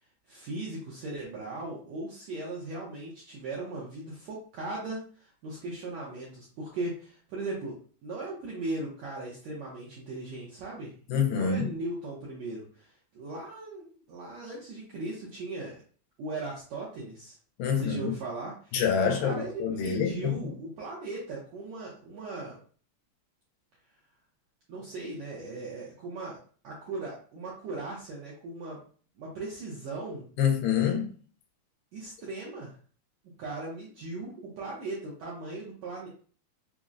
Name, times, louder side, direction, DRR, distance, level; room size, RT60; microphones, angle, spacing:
voice 1, 0.3-10.9 11.3-12.9 13.1-15.8 16.2-17.3 17.6-18.8 19.2-22.6 24.7-26.4 26.6-28.8 29.2-30.3 31.9-32.7 33.4-36.1, right 2 dB, 80° right, 1.6 m, -38 dB
voice 2, 11.1-11.8 17.6-18.1 18.7-20.3 30.4-31.1, left 7 dB, 85° left, 2.4 m, -26 dB
5.7 x 2.0 x 2.4 m
omnidirectional pair, 4.0 m